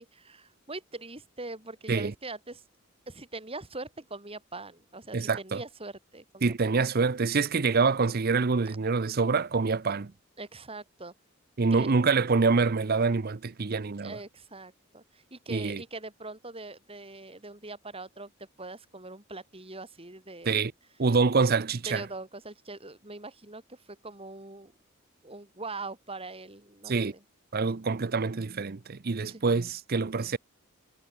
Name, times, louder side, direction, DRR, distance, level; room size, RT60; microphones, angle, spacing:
voice 1, 0.0-2.6 3.1-6.7 10.4-11.1 11.7-11.9 14.0-20.6 21.9-24.7 25.2-27.2 29.3-29.4, right 3 dB, 30° right, 5.0 m, -42 dB
voice 2, 5.1-5.6 6.4-10.1 11.6-14.2 15.5-15.8 20.4-20.7 21.0-22.0 26.9-27.1 27.5-30.4, right 4 dB, 50° right, 0.7 m, -26 dB
head